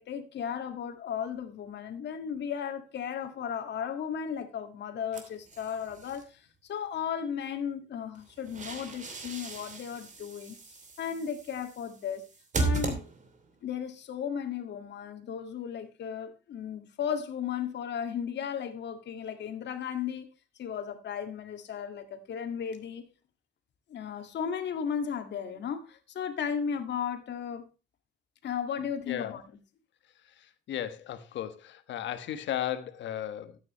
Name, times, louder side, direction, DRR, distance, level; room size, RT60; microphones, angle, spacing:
voice 1, 0.0-12.2 12.6-13.1 13.6-20.3 20.6-23.1 23.9-27.7 28.4-29.4, left 7 dB, 75° left, 1.9 m, -35 dB
sound 1, 5.1-6.2 8.2-13.5, right 3 dB, 40° right, 2.9 m, -36 dB
voice 2, 30.4-33.6, left 11 dB, 90° left, 1.3 m, -35 dB
12.5 x 9.1 x 3.1 m
cardioid pair, 120°, 18 cm